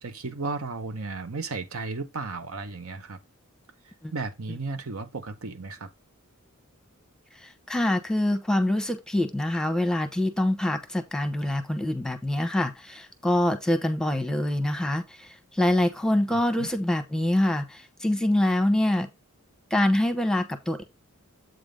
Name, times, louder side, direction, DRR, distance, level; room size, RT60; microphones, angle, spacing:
voice 1, 0.0-3.2 3.8-5.9 16.3-16.7, right 3 dB, 70° right, 0.9 m, -34 dB
voice 2, 7.4-19.1 19.7-20.8, left 1 dB, 5° left, 0.9 m, -25 dB
8.0 x 3.5 x 5.1 m
head